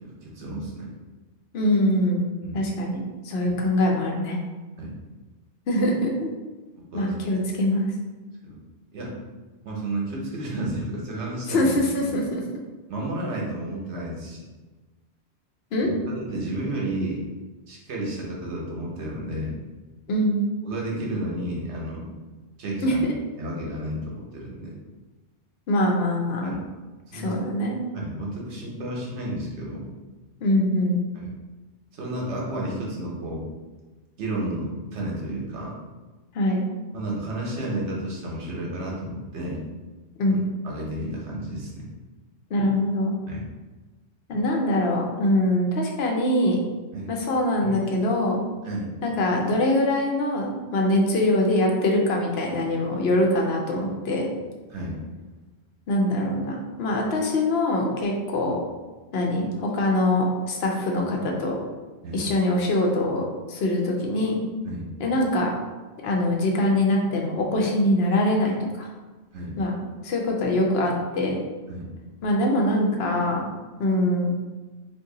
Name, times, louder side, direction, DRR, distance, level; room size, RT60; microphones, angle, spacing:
voice 1, 0.2-0.9 2.4-2.6 3.4-3.5 4.8-4.9 6.9-7.2 8.4-8.6 8.9-9.1 9.6-11.8 12.9-14.4 15.8-17.2 17.7-19.5 20.6-22.1 22.6-23.0 23.4-24.7 26.4-26.6 27.1-27.4 27.9-29.8 31.1-31.3 31.9-33.4 34.2-35.7 36.9-39.6 40.3-40.4 40.6-41.8 43.3-43.4 46.9-47.1 47.6-47.7 48.6-48.9 54.7-55.0 62.0-62.2 64.6-64.9 69.3-69.5 71.7-71.8, right 1 dB, 80° right, -3 dB, 1.1 m, -32 dB
voice 2, 1.5-2.3 2.5-4.4 5.7-6.3 6.9-7.9 11.5-12.4 15.7-15.9 20.1-20.4 22.8-23.0 25.7-26.5 27.1-27.8 30.4-31.0 36.3-36.6 40.2-40.3 42.5-43.1 44.3-46.6 47.1-48.4 49.0-54.3 55.9-58.6 59.1-61.6 62.1-64.4 65.0-65.5 66.0-68.9 69.6-69.7 70.0-71.4 72.2-73.4 73.8-74.3, left 1 dB, 65° left, 0 dB, 0.8 m, -23 dB
2.7 x 2.5 x 3.7 m, 1.2 s
omnidirectional pair, 1.1 m